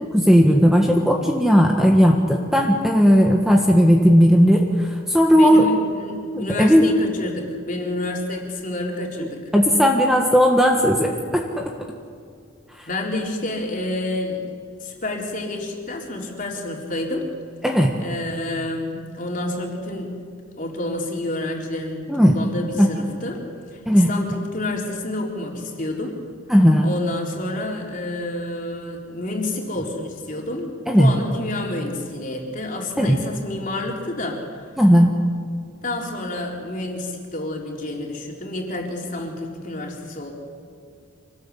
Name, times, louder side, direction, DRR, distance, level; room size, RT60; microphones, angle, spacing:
voice 1, 0.1-5.7 6.3-6.9 9.5-11.7 17.6-17.9 22.1-22.4 22.8-22.9 23.9-24.1 26.5-26.9 30.9-31.1 33.0-33.2 34.8-35.1, equal, ahead, 1 dB, 1.5 m, -16 dB
voice 2, 5.3-9.4 12.9-14.4 14.8-17.3 18.0-20.2 20.6-23.4 23.7-26.2 26.8-34.6 35.8-40.3, left 1 dB, 40° left, 0 dB, 4.0 m, -29 dB
26.0 x 19.0 x 8.4 m, 2.3 s
head